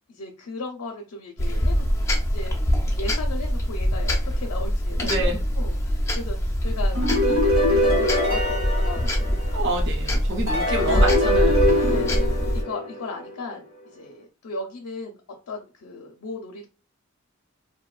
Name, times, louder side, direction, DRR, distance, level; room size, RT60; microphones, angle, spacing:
voice 1, 0.1-1.9 2.3-2.6 2.8-6.4 6.6-9.7 10.7-11.1 11.9-13.6 13.9-15.2 15.5-16.7, left 3 dB, 75° left, 3 dB, 0.5 m, -36 dB
sound 1, 1.4-12.6, equal, 15° left, 0.3 m, -24 dB
voice 2, 5.0-5.4 9.5-11.8, right 2 dB, 50° right, 1 dB, 0.5 m, -28 dB
sound 2, 7.0-9.8 10.5-13.3, left 1 dB, 70° right, 1.3 m, -23 dB
2.6 x 2.2 x 2.3 m, 0.31 s
head